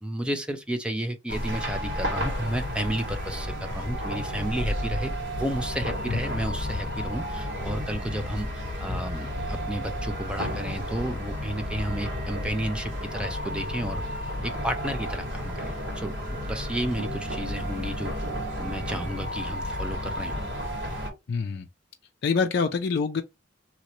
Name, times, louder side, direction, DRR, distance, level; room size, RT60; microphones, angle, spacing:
voice 1, 0.0-5.1 5.4-8.5 8.8-14.0 14.4-18.2 18.6-20.5, right 1 dB, 5° right, 0.5 m, -32 dB
sound 1, 1.3-21.1, equal, 60° right, 1.7 m, -32 dB
voice 2, 21.3-21.7 22.2-23.2, left 5 dB, 55° left, 0.4 m, -25 dB
2.9 x 2.7 x 3.1 m
head